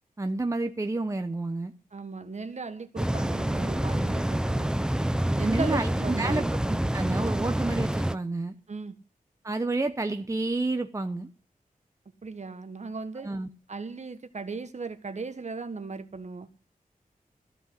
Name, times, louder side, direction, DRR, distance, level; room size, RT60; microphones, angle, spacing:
voice 1, 0.2-1.7 5.5-5.9 6.2-8.5 9.4-11.3 13.2-13.5, right 2 dB, 20° right, 6 dB, 1.0 m, -30 dB
voice 2, 1.9-4.7 5.3-6.5 8.7-8.9 12.2-13.3 13.7-16.5, right 4 dB, 55° right, 9 dB, 1.5 m, -36 dB
sound 1, 3.0-8.1, right 1 dB, 5° right, 0.6 m, -27 dB
14.5 x 5.5 x 9.6 m, 0.37 s
wide cardioid pair, 105°, 14 cm